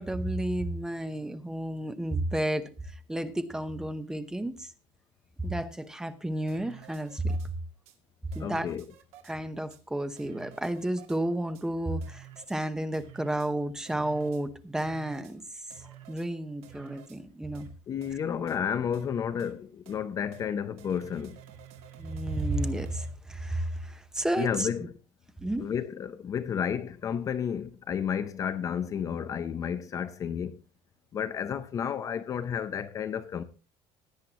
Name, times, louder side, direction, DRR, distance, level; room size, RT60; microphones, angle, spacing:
voice 1, 0.0-2.7 3.1-4.7 5.4-7.4 8.3-8.7 9.2-15.4 15.8-17.7 22.0-24.7 25.4-25.7, right 1 dB, 5° right, 0.8 m, -32 dB
sound 1, 6.5-7.5 7.9-8.0 8.3-9.3 9.7-9.8 10.2-11.2 11.5-11.7 12.0-12.6 12.9-13.5 13.9-14.4 14.8-15.3 15.7-16.3 16.6-17.2 17.5-17.7 18.0-18.1 18.5-18.6 18.9-19.1 19.4-19.5 19.9-20.0 20.3-20.5 20.8-23.1, right 9 dB, 55° right, 2.4 m, -50 dB
voice 2, 8.4-8.8 17.9-21.4 24.4-24.9 25.6-30.6 31.1-33.4, left 8 dB, 25° left, 0.6 m, -31 dB
17.0 x 9.4 x 2.9 m
cardioid pair, 180°, 12 cm